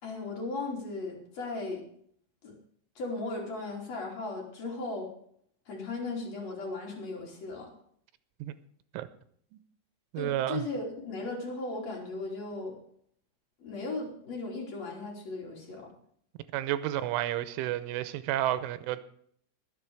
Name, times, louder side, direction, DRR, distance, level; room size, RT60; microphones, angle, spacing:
voice 1, 0.0-1.8 2.4-2.5 3.0-5.1 5.7-7.7 10.2-12.7 13.6-15.9, left 3 dB, 35° left, 4.0 m, -37 dB
voice 2, 10.1-10.7 16.5-19.0, right 13 dB, 85° right, 3.2 m, -31 dB
21.0 x 7.7 x 4.8 m
omnidirectional pair, 5.7 m